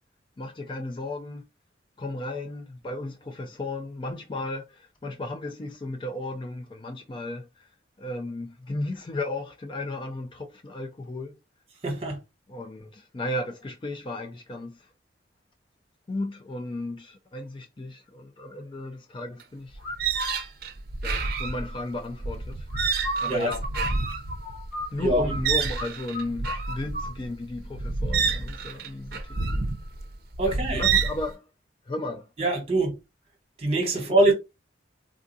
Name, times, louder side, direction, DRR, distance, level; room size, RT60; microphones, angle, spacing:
voice 1, 0.4-1.4 2.0-7.7 8.0-11.4 12.5-14.9 16.1-19.8 21.0-22.7 23.2-23.7 24.9-29.6 30.4-31.5 31.8-32.3 33.9-34.2, left 2 dB, 25° left, 0.3 m, -34 dB
voice 2, 11.8-12.2 23.3-23.5 25.0-25.3 30.4-30.9 32.4-33.0 33.6-34.3, right 2 dB, 35° right, 1.2 m, -23 dB
sound 1, 19.4-19.5 19.7-31.3, right 5 dB, 55° right, 0.6 m, -29 dB
sound 2, 19.8-20.4 22.7-25.4 25.7-25.9 26.1-27.1, equal, 70° left, 1.4 m, -33 dB
3.6 x 2.3 x 2.6 m
head